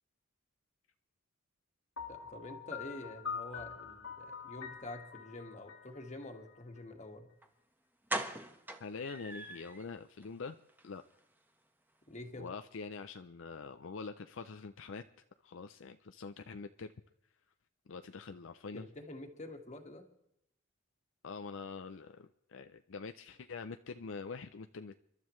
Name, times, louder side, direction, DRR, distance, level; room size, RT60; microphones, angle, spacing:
Piano, 2.0-6.8, left 6 dB, 85° left, 2.2 m, -45 dB
voice 1, 2.1-7.3 12.1-12.5 18.7-20.1, left 1 dB, 35° left, 4 dB, 1.7 m, -47 dB
sound 1, 7.4-7.5 8.1-9.9 10.2-10.3 10.7-10.8 11.1-11.2, right 1 dB, 10° right, 1.1 m, -40 dB
voice 2, 8.8-10.6 10.8-11.0 12.4-15.1 15.4-16.9 17.9-18.9 21.2-25.0, left 4 dB, 65° left, 8 dB, 0.5 m, -45 dB
29.5 x 12.5 x 3.2 m, 0.78 s
head